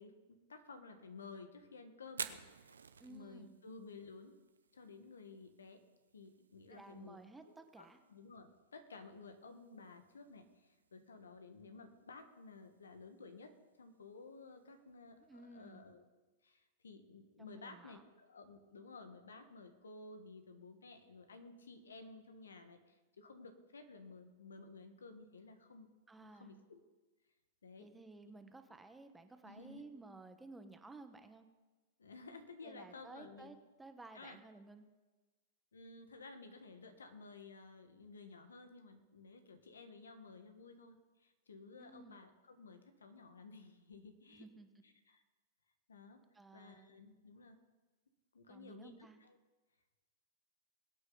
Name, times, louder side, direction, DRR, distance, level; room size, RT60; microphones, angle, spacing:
voice 1, 0.0-2.7 3.1-4.3 4.7-5.8 6.1-7.2 7.4-7.5 7.8-13.5 13.8-16.0 16.4-25.9 26.2-26.8 27.6-27.9 29.4-29.9 32.0-33.5 34.1-34.4 35.7-44.4 44.8-45.2 45.9-46.2 46.5-47.6 48.3-48.9 49.2-49.4, left 3 dB, 85° left, 8 dB, 1.5 m, -54 dB
Fire, 2.1-15.9, right 6 dB, 85° right, 0.7 m, -55 dB
voice 2, 3.0-3.5 6.7-8.0 15.2-15.9 17.4-18.1 26.1-26.6 27.8-31.5 32.6-34.9 41.8-42.2 44.3-44.7 46.3-46.9 48.5-49.2, right 3 dB, 10° right, 7 dB, 1.2 m, -55 dB
21.5 x 8.8 x 4.0 m, 1.2 s
hypercardioid pair, 110°, 0 cm